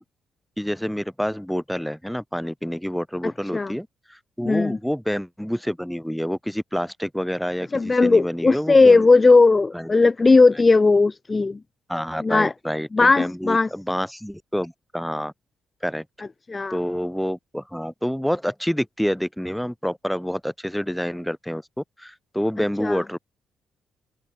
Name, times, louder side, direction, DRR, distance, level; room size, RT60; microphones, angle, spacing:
voice 1, 0.6-9.0 9.7-9.9 11.9-15.3 15.8-16.0 16.7-23.2, equal, ahead, 1.3 m, -28 dB
voice 2, 4.4-4.8 7.7-11.6 12.2-12.5 12.9-13.7 16.5-16.8 22.8-23.0, left 3 dB, 25° left, 0.3 m, -17 dB
open air
cardioid pair, 90°, 0 cm